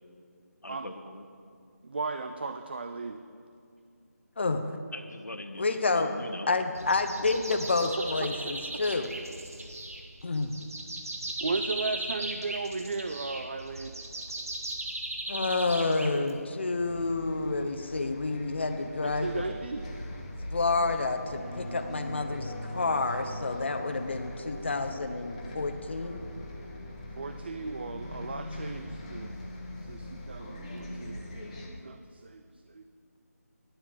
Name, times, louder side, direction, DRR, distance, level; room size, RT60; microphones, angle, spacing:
voice 1, 0.6-1.2 4.9-6.5, left 1 dB, 75° left, 5 dB, 1.5 m, -41 dB
voice 2, 1.8-3.2 7.8-7.9 8.2-8.3 11.4-14.0 19.0-19.8 27.2-29.3 29.8-31.2 31.8-32.9, right 3 dB, 40° right, 8 dB, 0.5 m, -36 dB
voice 3, 4.4-4.7 5.6-6.1 6.5-9.1 10.2-10.5 15.3-19.4 20.5-26.2, left 3 dB, 45° left, 7 dB, 1.0 m, -29 dB
sound 1, 6.8-16.6, right 1 dB, 60° right, 2.0 m, -38 dB
Bus, 16.8-31.7, left 1 dB, 20° left, 1.5 m, -42 dB
sound 2, 21.0-30.1 30.4-30.5, equal, 10° right, 3.5 m, -43 dB
13.5 x 9.8 x 7.6 m, 2.3 s
figure-of-eight pair, 160°, 9 cm